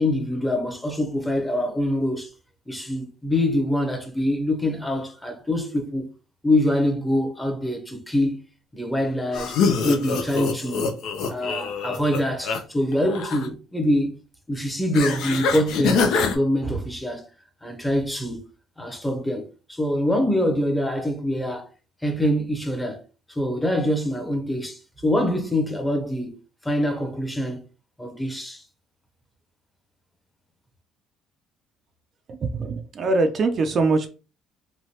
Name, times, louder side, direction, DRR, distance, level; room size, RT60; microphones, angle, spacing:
voice 1, 0.0-2.3 2.7-6.1 6.4-8.4 8.7-9.6 9.8-10.9 11.2-14.2 14.5-17.3 17.6-18.5 18.8-21.7 22.0-23.0 23.3-26.4 26.6-27.6 28.0-28.6, left 1 dB, 10° left, 0.8 m, -24 dB
sound 1, 9.3-12.6 12.9-13.5 14.9-16.4, left 5 dB, 75° left, 0.6 m, -24 dB
voice 2, 32.3-34.1, right 3 dB, 45° right, 0.4 m, -22 dB
3.1 x 2.3 x 2.8 m
cardioid pair, 95°, 0 cm